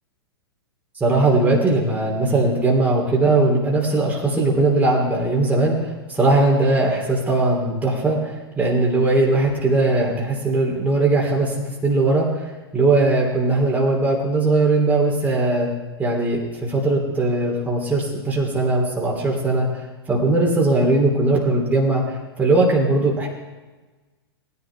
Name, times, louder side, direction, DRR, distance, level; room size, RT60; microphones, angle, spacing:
voice 1, 1.0-15.7 16.0-23.3, right 2 dB, 10° right, -3 dB, 3.1 m, -19 dB
19.0 x 10.5 x 3.5 m, 1.2 s
figure-of-eight pair, 100°, 14 cm